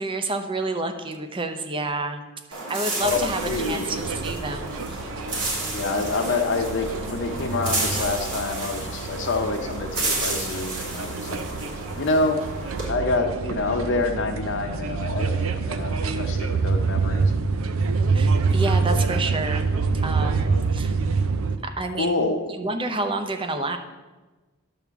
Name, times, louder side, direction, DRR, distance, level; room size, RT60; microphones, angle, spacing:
voice 1, 0.0-2.2 2.5-5.0 18.1-19.7 20.0-20.9 21.6-22.3 22.6-23.8, right 2 dB, 25° right, 6 dB, 0.7 m, -29 dB
sound 1, 2.5-12.9, right 2 dB, 60° right, 3.2 m, -32 dB
voice 2, 3.0-3.9 5.7-11.4 11.9-12.4 12.9-17.3 20.5-20.6 21.1-21.2 22.0-22.4, left 3 dB, 60° left, 5 dB, 0.7 m, -27 dB
sound 2, 3.0-21.6, right 4 dB, 75° right, 0.6 m, -26 dB
10.5 x 3.6 x 7.0 m, 1.2 s
head